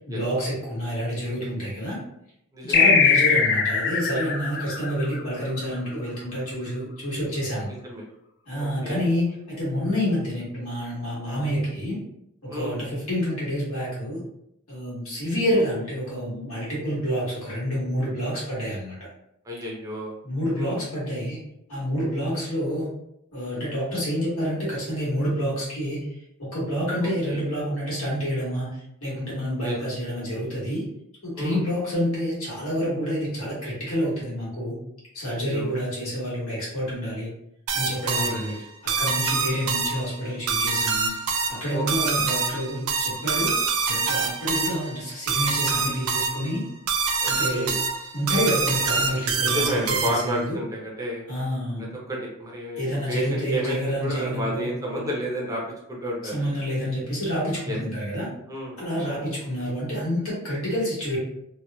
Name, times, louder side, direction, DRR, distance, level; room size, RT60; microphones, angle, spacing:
voice 1, 0.1-2.0 2.6-7.7 8.5-12.0 12.4-14.2 14.7-19.0 20.2-21.4 21.7-22.9 23.3-26.1 26.4-30.8 31.2-34.8 35.1-37.3 37.7-38.5 39.0-41.1 41.5-43.5 43.9-46.6 47.2-47.8 48.1-50.6 51.3-52.0 52.8-54.7 56.3-58.3 58.8-61.2, equal, 75° left, -7 dB, 1.4 m, -28 dB
voice 2, 2.5-2.9 7.8-8.0 8.6-9.1 12.5-12.8 19.4-20.1 20.5-20.8 27.0-27.5 29.6-29.8 31.3-31.6 35.2-35.7 38.1-38.6 41.7-42.2 47.2-47.8 49.4-51.2 52.1-55.6 55.9-56.4 57.6-57.8 58.5-58.8, equal, 15° right, -3 dB, 0.6 m, -31 dB
sound 1, 2.7-5.7, left 6 dB, 50° left, 0.3 m, -21 dB
sound 2, 37.7-50.4, right 4 dB, 70° right, 0.4 m, -26 dB
2.9 x 2.2 x 2.2 m, 0.79 s
head